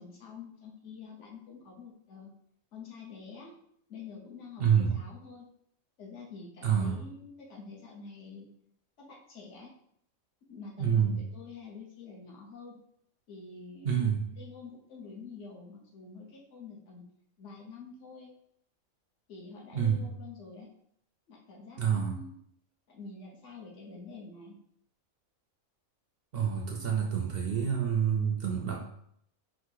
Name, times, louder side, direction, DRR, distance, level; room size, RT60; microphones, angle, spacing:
voice 1, 0.0-2.3 2.7-3.5 3.9-5.5 6.0-8.5 9.0-9.7 10.4-12.8 13.3-17.0 17.4-18.3 19.3-20.7 21.3-22.3 22.9-24.5, left 4 dB, 60° left, -2 dB, 1.3 m, -47 dB
voice 2, 4.6-5.0 6.6-7.0 10.8-11.2 13.8-14.3 19.7-20.1 21.8-22.2 26.3-28.8, right 7 dB, 60° right, 1 dB, 0.6 m, -27 dB
4.2 x 2.2 x 4.5 m, 0.68 s
omnidirectional pair, 1.5 m